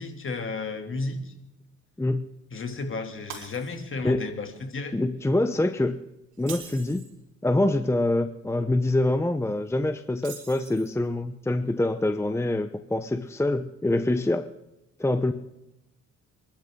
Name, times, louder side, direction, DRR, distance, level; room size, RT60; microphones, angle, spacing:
voice 1, 0.0-1.3 2.5-4.9, left 3 dB, 40° left, 4 dB, 2.8 m, -33 dB
Shatter, 3.3-4.1 4.5-4.7 6.3-7.2 10.2-11.1, right 8 dB, 80° right, 4.2 m, -43 dB
voice 2, 4.9-6.0 6.4-7.0 7.4-14.5 15.0-15.3, left 2 dB, 10° left, 9 dB, 0.8 m, -25 dB
28.5 x 12.0 x 3.8 m, 0.91 s
cardioid pair, 90°, 30 cm